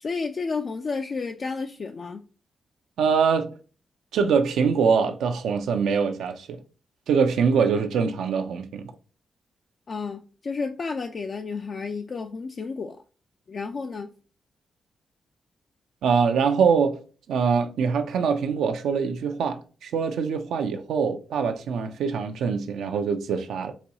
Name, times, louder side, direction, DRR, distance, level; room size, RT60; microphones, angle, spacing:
voice 1, 0.0-2.2 9.9-13.0 13.5-14.1, left 4 dB, 50° left, 0.3 m, -31 dB
voice 2, 3.0-3.5 4.1-6.6 7.1-8.9 16.0-17.0 17.3-23.7, right 6 dB, 85° right, 0.4 m, -23 dB
4.0 x 2.3 x 2.7 m
cardioid pair, 65°, 0 cm